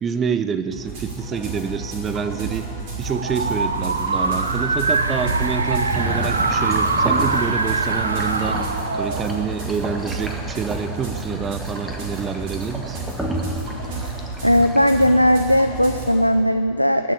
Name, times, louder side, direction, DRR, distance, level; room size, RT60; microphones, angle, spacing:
voice 1, 0.0-2.7 3.0-8.6 9.0-13.0, right 6 dB, 25° right, 12 dB, 0.6 m, -27 dB
sound 1, 0.7-16.1, right 3 dB, 45° right, 4.6 m, -32 dB
sound 2, 2.8-10.0, right 3 dB, 75° right, 0.7 m, -23 dB
sound 3, 5.9-15.1, right 1 dB, 10° right, 1.6 m, -32 dB
voice 2, 14.4-17.1, equal, 90° left, 9 dB, 0.4 m, -17 dB
19.5 x 6.9 x 8.5 m, 2.5 s
figure-of-eight pair, 90°, 0 cm